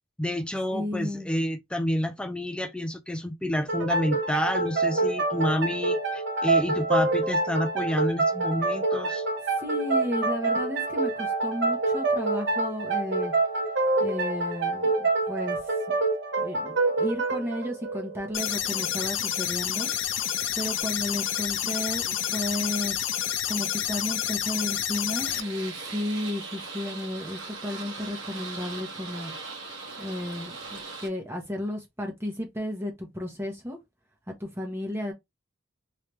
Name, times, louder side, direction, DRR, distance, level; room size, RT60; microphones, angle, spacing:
voice 1, 0.2-9.2, left 1 dB, 5° left, 0.4 m, -29 dB
voice 2, 0.7-1.3 9.6-13.3 14.0-15.7 16.4-19.9 20.6-23.0 23.5-29.3 30.0-33.8 34.3-35.1, left 1 dB, 15° right, 0.9 m, -33 dB
sound 1, 3.7-19.0, right 3 dB, 65° right, 1.0 m, -26 dB
sound 2, 18.3-25.4, left 10 dB, 75° left, 0.6 m, -29 dB
sound 3, 25.2-31.1, right 4 dB, 85° right, 1.3 m, -39 dB
3.2 x 3.2 x 3.0 m
head